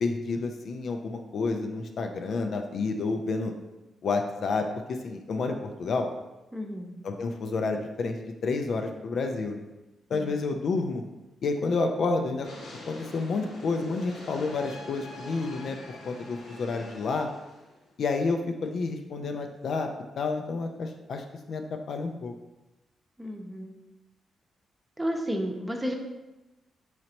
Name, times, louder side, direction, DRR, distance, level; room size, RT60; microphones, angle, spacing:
voice 1, 0.0-3.5 4.0-6.1 7.0-8.2 8.4-9.6 10.1-11.0 11.4-12.5 12.9-17.3 18.0-19.9 20.2-22.3, left 3 dB, 65° left, 4 dB, 0.4 m, -30 dB
voice 2, 6.5-6.9 10.1-10.4 23.2-23.8 25.0-25.9, equal, 15° right, 2 dB, 0.7 m, -32 dB
sound 1, 12.4-17.9, left 1 dB, 80° left, 0.9 m, -44 dB
3.9 x 3.1 x 2.9 m, 1.0 s
hypercardioid pair, 45°, 0 cm